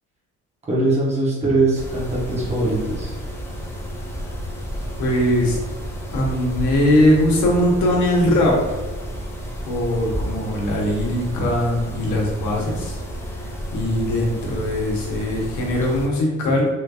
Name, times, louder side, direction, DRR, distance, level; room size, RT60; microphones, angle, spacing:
voice 1, 0.6-3.2, right 2 dB, 20° right, -5 dB, 1.0 m, -21 dB
Mechanisms, 1.8-16.1, equal, 10° left, 0.4 m, -31 dB
voice 2, 5.0-5.6 6.1-8.5 9.6-13.0 13.7-16.7, left 1 dB, 75° left, -1 dB, 1.0 m, -20 dB
3.2 x 3.0 x 2.4 m, 1.2 s
cardioid pair, 165°, 29 cm